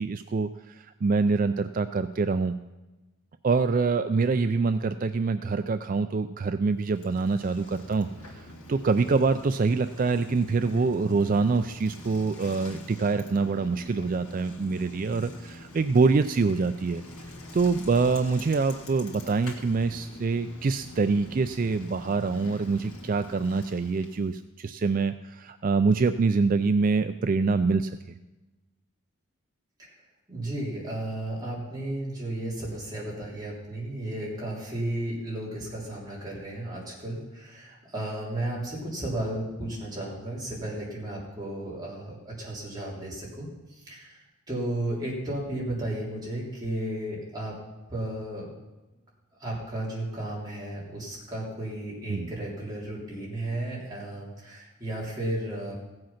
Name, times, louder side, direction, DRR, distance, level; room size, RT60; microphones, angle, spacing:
voice 1, 0.0-2.5 3.4-8.1 8.3-17.0 17.5-28.2 52.1-52.3, right 4 dB, 40° right, 10 dB, 0.3 m, -25 dB
Bicycle, 6.8-24.4, left 1 dB, 80° left, 1.9 m, -45 dB
voice 2, 30.3-44.2 44.5-47.6 47.9-48.5 49.4-55.7, right 1 dB, 20° right, -5 dB, 3.4 m, -34 dB
15.5 x 7.8 x 5.8 m, 1.1 s
head